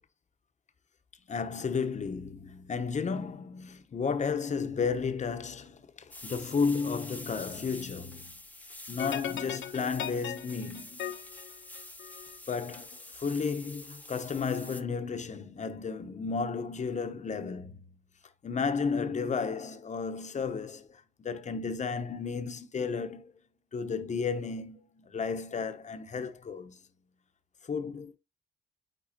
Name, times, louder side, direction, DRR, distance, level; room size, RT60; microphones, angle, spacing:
voice 1, 1.3-8.3 8.9-11.1 12.5-17.8 18.4-23.3 23.7-26.8 27.6-28.2, left 5 dB, 35° left, 1.0 m, -33 dB
sound 1, 6.1-14.8, left 1 dB, 10° left, 0.8 m, -47 dB
sound 2, 9.0-12.4, left 9 dB, 75° left, 1.2 m, -38 dB
9.1 x 4.1 x 2.8 m
cardioid pair, 90°, 20 cm